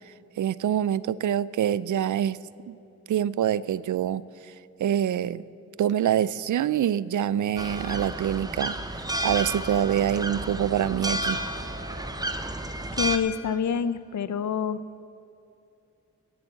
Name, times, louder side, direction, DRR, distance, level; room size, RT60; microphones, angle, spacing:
voice 1, 0.4-2.4 2.7-2.8 3.1-4.2 4.8-5.4 5.8-8.7 9.2-11.4, right 10 dB, 80° right, 19 dB, 0.5 m, -25 dB
sound 1, 7.6-13.2, right 1 dB, 15° right, 0.9 m, -31 dB
voice 2, 12.9-14.8, left 7 dB, 70° left, 15 dB, 0.6 m, -27 dB
15.0 x 8.3 x 7.4 m, 2.6 s
wide cardioid pair, 90°, 30 cm